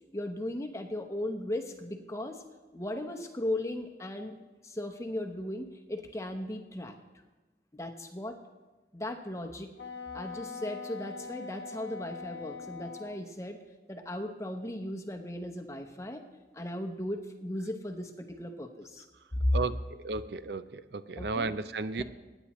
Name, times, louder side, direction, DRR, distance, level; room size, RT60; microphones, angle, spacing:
voice 1, 0.1-2.4 2.7-4.4 4.6-6.9 7.7-8.4 8.9-9.7 10.1-13.6 13.9-16.2 16.5-19.1 19.3-19.6 21.2-21.5 22.0-22.1, left 1 dB, 15° left, 4 dB, 0.8 m, -36 dB
Wind instrument woodwind instrument, 9.8-13.2, left 5 dB, 90° left, 1.0 m, -42 dB
voice 2, 19.5-22.0, right 3 dB, 70° right, 13 dB, 0.6 m, -34 dB
24.0 x 9.9 x 3.1 m, 1.2 s
head